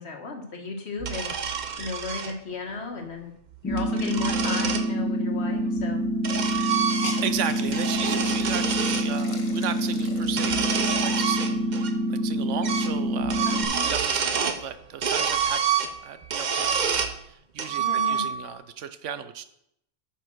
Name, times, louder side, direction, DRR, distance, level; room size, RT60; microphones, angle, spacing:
voice 1, 0.0-1.3 1.8-3.3 3.6-6.1 13.4-14.0 17.8-18.3, left 3 dB, 60° left, 3 dB, 1.7 m, -34 dB
sound 1, 1.0-2.3 3.5-4.9 5.8-7.4 7.7-9.1 10.3-11.9 12.2-12.3 12.6-13.0 13.2-14.6 15.0-17.2 17.6-18.5, right 7 dB, 45° right, 0.8 m, -28 dB
sound 2, 3.6-13.6, equal, 5° left, 1.4 m, -27 dB
Hiss, 5.6-5.7 5.9-6.0 6.4-11.5 12.0-12.1 12.5-13.9, left 3 dB, 40° left, 1.2 m, -42 dB
voice 2, 7.2-15.6 16.0-19.4, right 9 dB, 85° right, 12 dB, 1.1 m, -35 dB
8.6 x 5.5 x 6.1 m, 0.74 s
omnidirectional pair, 1.2 m